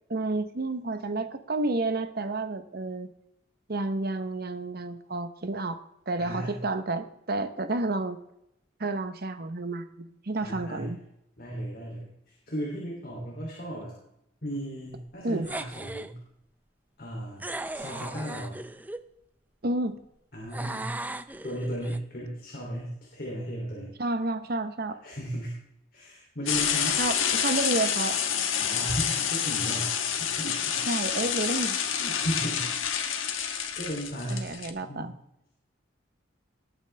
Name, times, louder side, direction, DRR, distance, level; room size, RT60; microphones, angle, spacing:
voice 1, 0.1-3.1 3.7-8.2 8.8-11.0 15.2-15.5 19.6-20.0 24.0-25.0 26.9-28.4 30.9-32.1 34.3-35.1, right 2 dB, 50° right, 10 dB, 1.0 m, -30 dB
voice 2, 6.2-6.6 10.4-10.9 11.4-13.9 14.4-16.2 17.0-17.5 17.7-18.6 20.3-21.0 21.4-23.9 25.0-25.5 25.9-27.0 28.6-30.8 32.0-33.5 33.8-34.4 34.8-35.1, equal, 50° left, -2 dB, 3.0 m, -35 dB
sound 1, 15.4-16.1 17.4-19.0 20.5-22.0, right 2 dB, 10° right, 0.4 m, -37 dB
sound 2, 26.5-34.7, left 8 dB, 90° left, 1.3 m, -28 dB
19.5 x 8.9 x 3.4 m, 0.79 s
head